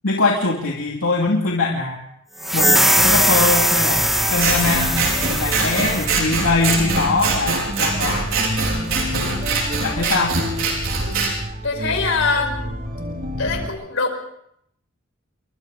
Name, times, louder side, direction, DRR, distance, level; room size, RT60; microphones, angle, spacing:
voice 1, 0.0-2.0 2.5-5.0 5.3-8.3 9.8-10.4, left 3 dB, 85° left, -1 dB, 2.7 m, -22 dB
sound 1, 2.4-6.1, equal, ahead, 2.2 m, -19 dB
sound 2, 3.0-13.7, equal, 40° right, 2.8 m, -29 dB
Scissors, 4.3-11.3, right 4 dB, 70° right, 5.3 m, -23 dB
voice 2, 11.6-12.5 13.4-14.2, left 4 dB, 70° left, 5 dB, 5.1 m, -22 dB
29.0 x 24.0 x 4.1 m, 0.73 s
head